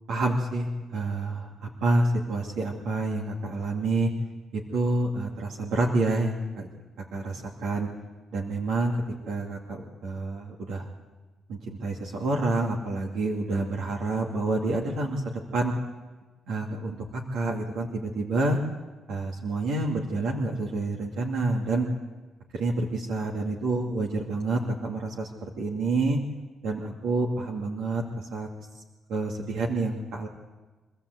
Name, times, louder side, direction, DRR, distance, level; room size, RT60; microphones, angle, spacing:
voice 1, 0.1-4.1 4.5-6.7 7.1-7.9 8.3-9.0 9.3-10.9 11.5-15.7 16.5-18.6 19.1-21.9 22.5-26.2 26.6-28.5 29.1-30.3, right 2 dB, 85° right, -2 dB, 2.5 m, -28 dB
25.5 x 14.5 x 8.0 m, 1.3 s
cardioid pair, 90°, 0 cm